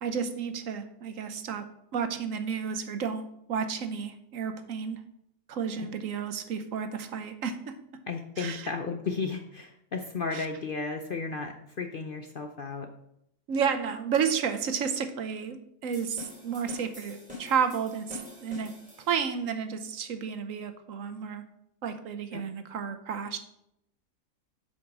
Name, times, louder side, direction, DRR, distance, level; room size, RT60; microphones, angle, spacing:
voice 1, 0.0-1.7 1.9-5.0 5.5-7.7 8.4-8.7 10.3-10.5 13.5-18.7 19.1-21.4 21.8-23.4, right 7 dB, 65° right, 9 dB, 1.1 m, -31 dB
voice 2, 8.1-12.9 22.3-22.4, left 4 dB, 50° left, 5 dB, 0.6 m, -34 dB
sound 1, 15.9-19.4, left 2 dB, 5° right, 2.9 m, -45 dB
8.4 x 5.2 x 6.1 m, 0.77 s
omnidirectional pair, 1.5 m